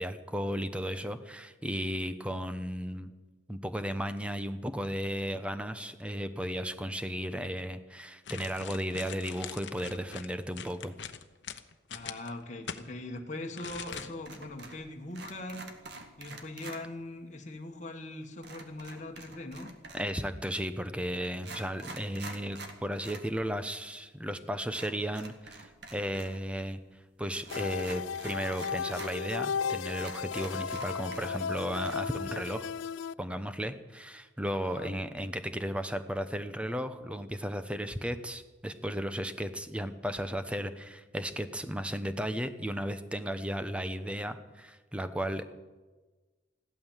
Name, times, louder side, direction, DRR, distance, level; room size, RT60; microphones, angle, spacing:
voice 1, 0.0-3.1 3.5-10.9 19.9-26.8 27.2-32.7 33.2-45.5, equal, 5° right, 10 dB, 0.9 m, -35 dB
sound 1, 8.2-12.8 13.6-14.4 14.7-14.8, left 7 dB, 65° left, 1.0 m, -42 dB
voice 2, 11.9-15.7 16.2-19.7 34.6-34.9, left 1 dB, 40° left, 2 dB, 1.5 m, -41 dB
sound 2, 13.9-14.8 15.1-16.8 18.4-20.2 20.9-21.0 21.3-23.3 23.6-23.7 24.7-26.4 26.6-26.7 27.4-29.1 29.6-29.7 30.0-31.5 31.7-31.9, right 3 dB, 60° right, 2.1 m, -47 dB
sound 3, 27.5-33.1, left 6 dB, 90° left, 0.4 m, -35 dB
16.0 x 12.0 x 7.4 m, 1.3 s
head